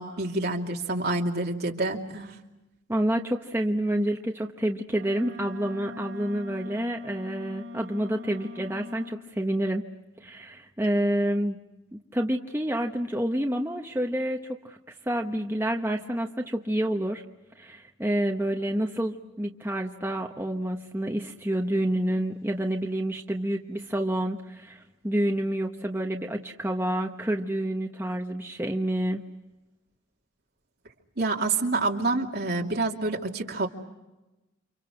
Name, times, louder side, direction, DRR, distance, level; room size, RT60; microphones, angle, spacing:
voice 1, 0.0-2.4 31.2-33.7, right 3 dB, 55° right, 1 dB, 2.8 m, -27 dB
voice 2, 2.9-9.8 10.2-11.6 11.9-14.8 15.1-17.2 17.6-29.2, right 1 dB, 10° right, 2 dB, 1.1 m, -28 dB
Wind instrument woodwind instrument, 4.9-9.2, left 4 dB, 80° right, 5.4 m, -42 dB
30.0 x 26.5 x 6.4 m, 1.0 s
head